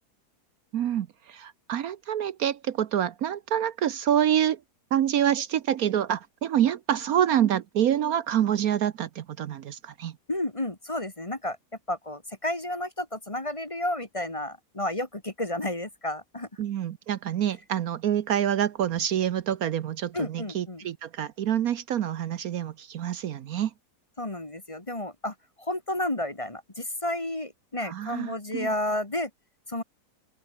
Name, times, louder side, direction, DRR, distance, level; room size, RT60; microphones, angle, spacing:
voice 1, 0.7-4.6 4.9-10.2 16.6-23.7 27.8-28.7, right 10 dB, 65° right, 1.2 m, -27 dB
voice 2, 10.3-11.6 11.9-16.5 20.1-20.9 24.2-29.3 29.7-29.8, left 1 dB, 20° left, 1.7 m, -31 dB
open air
omnidirectional pair, 1.7 m